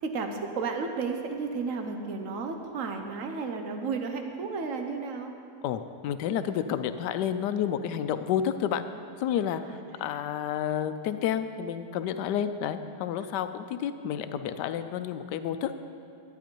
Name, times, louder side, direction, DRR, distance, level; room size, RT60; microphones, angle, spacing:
voice 1, 0.0-5.3 10.0-10.2, right 4 dB, 55° right, 5 dB, 1.2 m, -33 dB
voice 2, 5.6-8.8 9.2-9.6 10.0-15.7, left 9 dB, 90° left, 10 dB, 1.2 m, -30 dB
11.5 x 9.5 x 4.5 m, 2.6 s
omnidirectional pair, 1.8 m